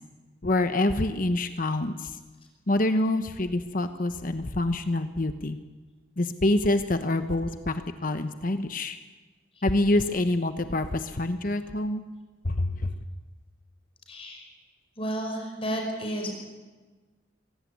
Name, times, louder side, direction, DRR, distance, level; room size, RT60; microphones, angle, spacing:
voice 1, 0.4-2.2 2.7-5.6 6.2-9.0 9.6-12.0 12.4-12.9, left 2 dB, 45° left, 9 dB, 1.1 m, -26 dB
voice 2, 14.1-14.5 15.0-16.3, right 1 dB, 30° left, 2 dB, 5.3 m, -32 dB
24.0 x 17.5 x 9.5 m, 1.3 s
head